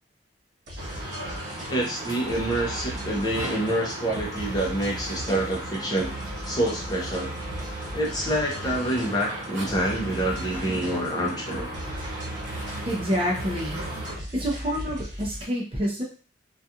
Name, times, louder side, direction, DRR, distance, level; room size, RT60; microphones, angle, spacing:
sound 1, 0.7-15.4, right 1 dB, 65° right, 1.1 m, -38 dB
sound 2, 0.8-14.2, right 1 dB, 85° right, 0.8 m, -36 dB
voice 1, 1.7-6.1 6.4-7.3 7.9-11.7, right 1 dB, 20° left, -3 dB, 0.6 m, -27 dB
voice 2, 12.8-13.8 14.3-16.0, equal, 30° right, -2 dB, 0.5 m, -27 dB
2.3 x 2.3 x 2.7 m, 0.38 s
head